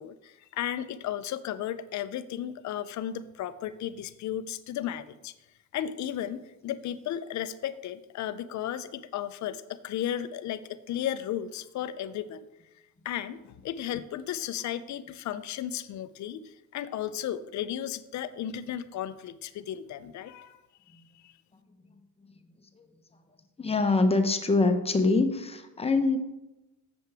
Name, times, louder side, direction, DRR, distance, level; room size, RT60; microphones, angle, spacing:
voice 1, 0.0-5.3 5.7-12.4 13.0-20.6 20.9-21.3, left 10 dB, 55° left, 13 dB, 0.5 m, -34 dB
voice 2, 23.6-26.2, left 3 dB, 20° left, 6 dB, 0.7 m, -24 dB
7.6 x 6.9 x 3.4 m, 0.98 s
cardioid pair, 120°, 34 cm